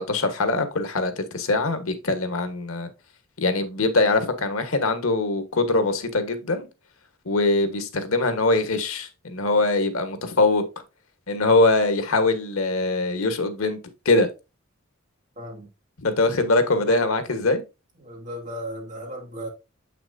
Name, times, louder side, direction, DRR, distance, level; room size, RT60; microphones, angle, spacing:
voice 1, 0.0-2.9 3.4-6.7 7.2-10.6 11.3-13.8 14.0-14.3 16.0-17.6, left 2 dB, 90° left, 1.4 m, -22 dB
voice 2, 15.4-15.7 16.9-17.4 18.0-19.5, equal, 35° right, 2.6 m, -36 dB
7.7 x 5.9 x 2.7 m
head